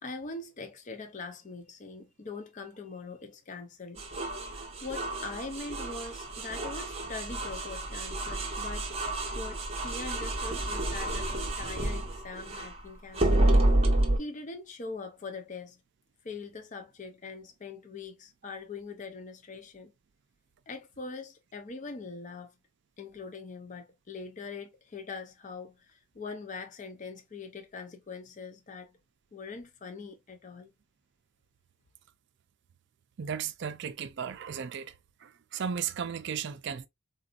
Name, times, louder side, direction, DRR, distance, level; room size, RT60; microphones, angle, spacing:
voice 1, 0.0-4.0 4.5-8.9 9.3-13.5 14.2-15.8 16.2-19.9 20.7-22.5 23.0-28.9 29.3-30.7, left 4 dB, 35° left, 0.5 m, -42 dB
sound 1, 4.0-12.8 13.1-14.2, right 1 dB, 30° right, 0.7 m, -29 dB
voice 2, 33.2-34.9 35.2-36.9, right 7 dB, 55° right, 0.4 m, -35 dB
3.9 x 2.5 x 2.4 m
head